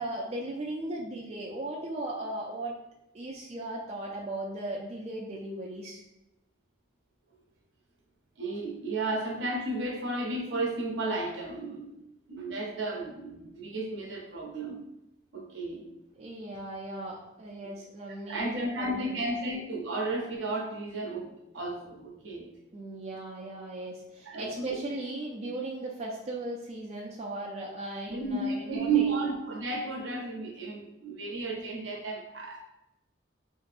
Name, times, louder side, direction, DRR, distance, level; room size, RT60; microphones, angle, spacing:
voice 1, 0.0-2.8 3.1-6.0 16.2-19.2 22.7-29.3, right 1 dB, 35° right, -2 dB, 0.3 m, -37 dB
voice 2, 8.4-11.9 12.3-14.8 15.3-15.8 18.3-22.5 23.4-23.5 24.3-24.8 28.1-32.7, right 3 dB, 75° right, -1 dB, 0.7 m, -33 dB
3.0 x 2.8 x 2.5 m, 0.89 s
head